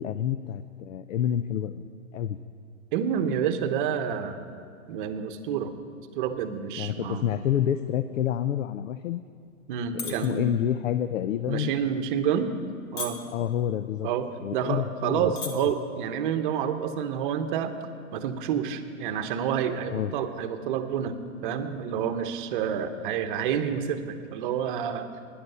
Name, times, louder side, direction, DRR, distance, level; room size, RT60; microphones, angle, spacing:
voice 1, 0.0-2.4 6.8-9.2 9.9-11.7 13.3-14.1 14.4-15.3 19.9-20.1, left 10 dB, 65° left, 12 dB, 0.6 m, -28 dB
voice 2, 2.9-4.4 4.9-5.7 6.2-7.3 9.7-10.6 11.5-12.5 12.9-13.2 14.0-17.7 18.1-25.1, right 8 dB, 35° right, 8 dB, 1.0 m, -29 dB
sound 1, 9.8-10.3 10.6-10.9 11.6-11.8 12.4-12.7 13.0-13.4 14.2-14.3 14.5-14.6 15.2-15.5 15.8-16.1, left 4 dB, 30° left, 1.4 m, -35 dB
15.5 x 10.5 x 5.5 m, 2.3 s
hypercardioid pair, 140°, 43 cm